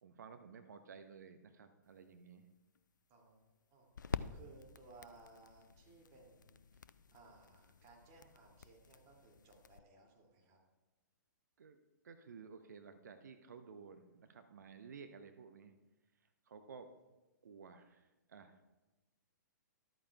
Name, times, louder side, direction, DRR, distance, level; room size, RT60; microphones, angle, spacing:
voice 1, 0.0-2.5 11.6-11.8 12.0-15.7 16.5-16.9 17.4-18.7, right 5 dB, 60° right, 8 dB, 0.7 m, -54 dB
sound 1, 1.9-9.8, left 6 dB, 70° left, 0.4 m, -49 dB
voice 2, 3.1-10.6, right 3 dB, 30° right, -1 dB, 2.5 m, -62 dB
13.0 x 12.5 x 2.3 m, 1.1 s
figure-of-eight pair, 115°, 10 cm